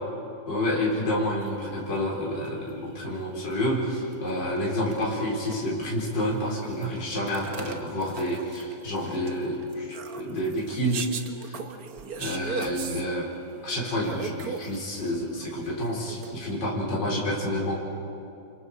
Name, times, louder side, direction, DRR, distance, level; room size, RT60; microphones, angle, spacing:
voice 1, 0.5-9.9 10.1-11.1 11.4-11.6 12.2-13.3 13.6-17.8, equal, 55° left, -5 dB, 4.8 m, -29 dB
sound 1, 2.0-2.1 2.5-2.7 3.5-3.6 4.1-4.2 4.4-4.6 4.9-5.5 5.8-6.0 6.3-6.4 6.8-13.1 14.0-15.1 15.3-16.6, right 5 dB, 50° right, 1.4 m, -38 dB
30.0 x 28.5 x 4.9 m, 2.7 s
omnidirectional pair, 2.3 m